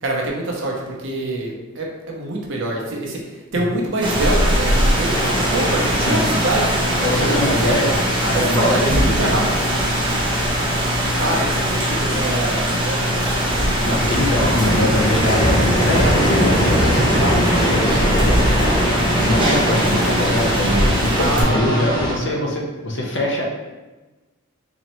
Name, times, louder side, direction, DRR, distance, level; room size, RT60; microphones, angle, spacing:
voice 1, 0.0-7.5 8.3-9.4 11.0-13.3 21.2-22.4, right 1 dB, 60° right, -1 dB, 0.7 m, -25 dB
Rain, 4.0-21.4, equal, 25° right, 0.7 m, -21 dB
sound 1, 5.1-22.1, equal, 20° left, 0.7 m, -23 dB
voice 2, 7.0-9.3 13.8-17.9 19.2-23.4, left 1 dB, 60° left, -1 dB, 0.7 m, -23 dB
3.9 x 3.0 x 3.0 m, 1.1 s
head